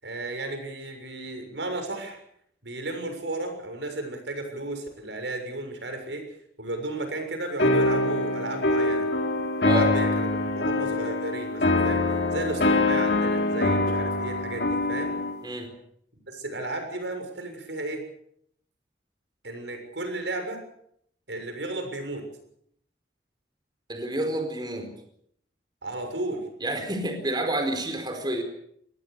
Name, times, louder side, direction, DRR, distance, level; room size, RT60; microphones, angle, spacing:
voice 1, 0.0-2.2 2.6-6.3 6.6-9.1 9.6-15.2 16.3-18.1 19.4-20.6 21.3-22.3 25.8-26.4, right 2 dB, 85° right, 6 dB, 6.9 m, -34 dB
sound 1, 7.6-15.4, left 2 dB, 65° left, 3.4 m, -24 dB
voice 2, 23.9-24.9 26.6-28.4, right 1 dB, 25° right, 5 dB, 4.5 m, -29 dB
26.0 x 20.5 x 6.8 m, 0.69 s
head